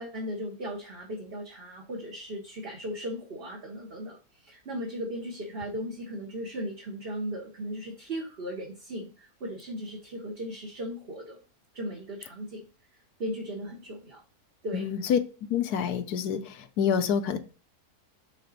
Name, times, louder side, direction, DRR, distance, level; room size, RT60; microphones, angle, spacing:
voice 1, 0.0-11.4 11.7-12.6 13.2-14.2 14.6-14.9, equal, 40° right, 1.2 m, -37 dB
voice 2, 14.7-15.2 15.5-17.4, left 7 dB, 75° left, 1.3 m, -27 dB
6.9 x 4.1 x 4.0 m
omnidirectional pair, 1.7 m